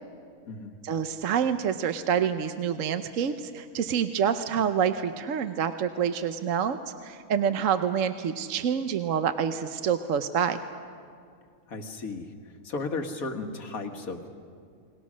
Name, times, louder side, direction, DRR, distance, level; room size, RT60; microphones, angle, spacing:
voice 1, 0.8-6.8 7.0-10.6, right 8 dB, 65° right, 9 dB, 1.1 m, -27 dB
voice 2, 11.7-14.3, left 3 dB, 80° left, 5 dB, 2.1 m, -35 dB
29.5 x 21.0 x 6.3 m, 2.3 s
omnidirectional pair, 1.5 m